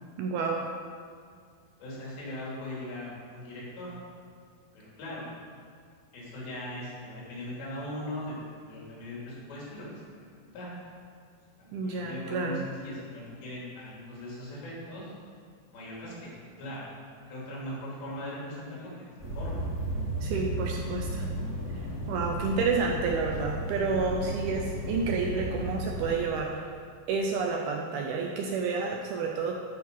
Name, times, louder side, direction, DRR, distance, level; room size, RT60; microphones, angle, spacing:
voice 1, 0.2-0.7 11.7-12.6 20.2-21.3 22.1-26.6 27.1-29.6, right 4 dB, 80° right, 1 dB, 2.3 m, -30 dB
voice 2, 1.8-3.9 4.7-5.3 6.1-10.0 10.4-10.7 11.6-15.1 15.7-16.3 16.6-16.9 17.3-19.7, left 1 dB, 80° left, -6 dB, 5.1 m, -39 dB
sound 1, 19.2-26.1, right 1 dB, 25° left, 1.8 m, -34 dB
12.5 x 5.3 x 5.4 m, 2.1 s
omnidirectional pair, 5.0 m